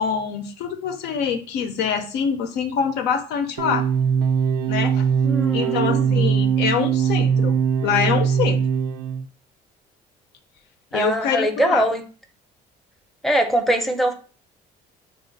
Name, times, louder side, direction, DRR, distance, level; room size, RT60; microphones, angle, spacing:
voice 1, 0.0-3.9 4.7-5.1 5.5-8.6 10.9-11.8, left 7 dB, 80° left, 7 dB, 0.6 m, -25 dB
sound 1, 3.6-9.3, right 7 dB, 90° right, 0.5 m, -21 dB
voice 2, 5.2-6.3 10.9-12.0 13.2-14.1, right 1 dB, ahead, 4 dB, 0.6 m, -22 dB
3.5 x 2.5 x 3.9 m, 0.39 s
cardioid pair, 110°, 17 cm